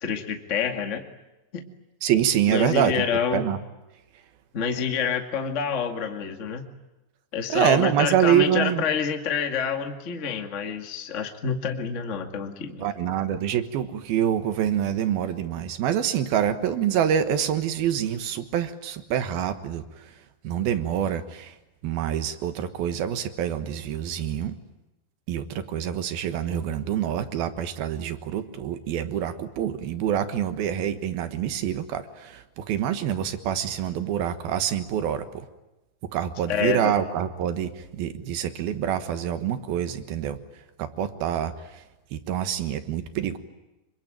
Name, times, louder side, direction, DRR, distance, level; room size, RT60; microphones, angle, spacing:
voice 1, 0.0-1.1 1.5-1.7 2.5-3.5 4.5-6.6 7.3-12.8 36.5-36.9, left 7 dB, 60° left, 5 dB, 0.7 m, -27 dB
voice 2, 2.0-3.0 3.3-3.6 7.5-8.8 12.8-20.1 20.4-21.6 21.8-24.6 25.3-35.5 36.1-40.4 40.8-41.8 42.1-43.4, right 10 dB, 65° right, 10 dB, 2.8 m, -26 dB
26.0 x 25.0 x 9.0 m, 1.0 s
omnidirectional pair, 5.3 m